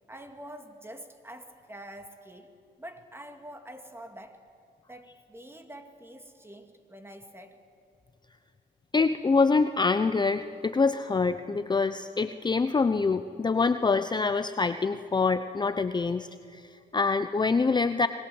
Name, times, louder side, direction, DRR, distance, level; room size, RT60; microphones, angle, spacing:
voice 1, 0.1-4.5 4.9-7.6, right 1 dB, 10° right, 6 dB, 2.4 m, -46 dB
voice 2, 8.9-18.1, left 4 dB, 20° left, 11 dB, 0.7 m, -25 dB
25.0 x 20.5 x 7.8 m, 2.4 s
cardioid pair, 90°, 20 cm